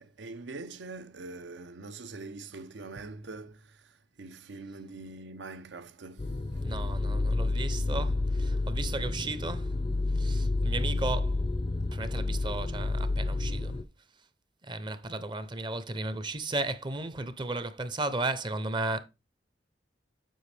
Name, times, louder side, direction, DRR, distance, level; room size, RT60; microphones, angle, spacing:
voice 1, 0.0-3.6 4.2-6.8 10.7-11.0, right 3 dB, 75° right, 0.6 m, -43 dB
sound 1, 6.2-13.8, left 2 dB, 30° left, 0.4 m, -30 dB
voice 2, 6.6-9.7 10.2-11.3 11.9-13.8 14.6-19.0, right 2 dB, 25° right, 0.6 m, -34 dB
7.8 x 5.1 x 3.3 m
head